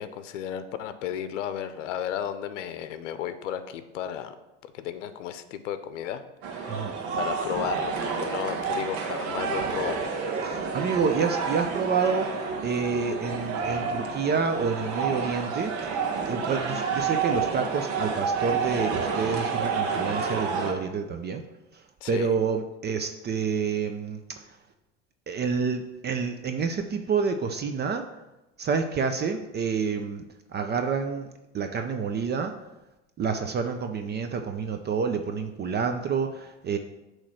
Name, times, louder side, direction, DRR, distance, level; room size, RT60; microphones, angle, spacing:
voice 1, 0.0-4.4 4.7-6.9 7.1-10.1 22.0-22.4, left 9 dB, 85° left, 11 dB, 0.7 m, -34 dB
sound 1, 6.4-20.7, right 5 dB, 65° right, 1.3 m, -29 dB
voice 2, 10.4-15.7 16.3-21.4 22.1-24.2 25.3-28.0 28.6-30.2 30.5-31.3 31.5-32.5 33.2-36.8, right 5 dB, 30° right, 6 dB, 0.6 m, -28 dB
8.4 x 3.2 x 6.3 m, 0.99 s
hypercardioid pair, 100°, 36 cm